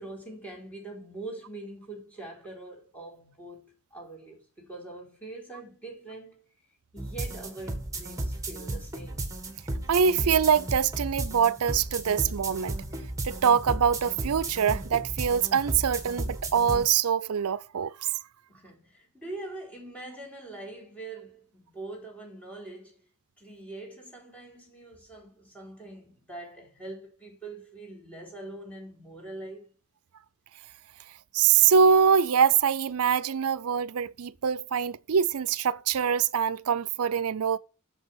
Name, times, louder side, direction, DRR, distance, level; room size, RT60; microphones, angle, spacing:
voice 1, 0.0-6.5 6.9-9.3 18.5-23.0 23.4-29.6, right 2 dB, 5° left, 4.4 m, -43 dB
sound 1, 7.0-16.9, right 2 dB, 15° right, 2.0 m, -34 dB
voice 2, 9.9-12.7 13.2-18.1 31.3-37.6, right 7 dB, 90° right, 0.5 m, -24 dB
8.0 x 7.0 x 6.2 m
head